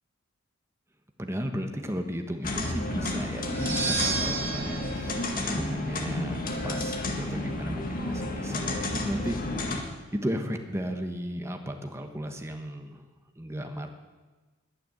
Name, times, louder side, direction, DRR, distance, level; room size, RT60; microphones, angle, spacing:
voice 1, 1.2-5.2 5.5-9.4 10.1-13.0 13.4-13.9, equal, 15° right, 4 dB, 1.3 m, -35 dB
sound 1, 2.4-9.8, left 2 dB, 45° left, 1.8 m, -31 dB
sound 2, 3.4-6.2, right 3 dB, 50° right, 5.4 m, -32 dB
20.5 x 6.9 x 8.0 m, 1.3 s
head